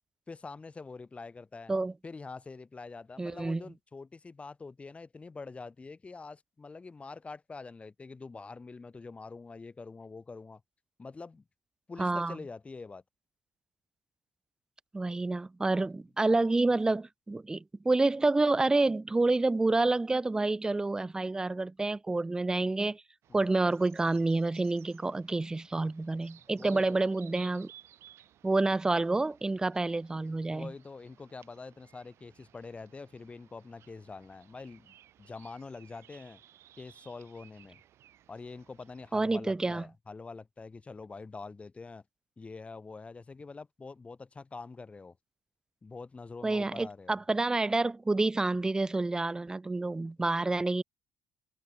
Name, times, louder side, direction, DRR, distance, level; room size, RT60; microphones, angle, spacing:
voice 1, 0.3-1.7 2.0-10.6 11.0-11.4 11.9-13.0 23.3-23.5 26.5-27.0 30.5-36.4 36.8-37.8 38.3-42.0 42.4-45.2 45.8-47.2, left 4 dB, 25° left, 0.7 m, -45 dB
voice 2, 3.2-3.6 12.0-12.4 14.9-23.0 23.3-27.7 28.4-30.7 39.1-39.8 46.4-50.8, right 2 dB, 15° right, 0.3 m, -28 dB
sound 1, 23.2-39.1, right 12 dB, 60° right, 0.9 m, -59 dB
open air
hypercardioid pair, 55°, 5 cm